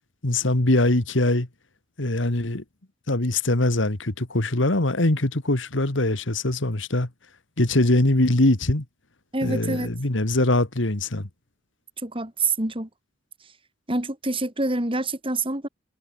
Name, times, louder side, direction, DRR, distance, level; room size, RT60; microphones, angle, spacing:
voice 1, 0.2-1.5 2.0-2.6 3.1-7.1 7.6-8.8 9.4-11.3, left 2 dB, 75° left, 2.1 m, -22 dB
voice 2, 9.3-9.9 12.0-12.9 13.9-15.7, right 2 dB, 25° right, 3.8 m, -26 dB
head